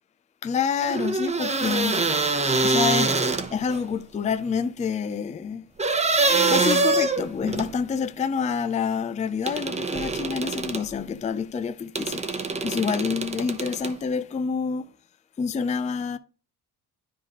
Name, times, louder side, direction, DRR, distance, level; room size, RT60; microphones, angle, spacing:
voice 1, 0.4-2.1 2.6-5.7 6.5-14.9 15.4-16.2, left 6 dB, 20° left, 0.4 m, -28 dB
sound 1, 0.8-3.8 5.8-7.7 9.5-10.9 12.0-13.9, right 3 dB, 15° right, 0.9 m, -24 dB
10.0 x 5.0 x 3.0 m
cardioid pair, 105°, 40 cm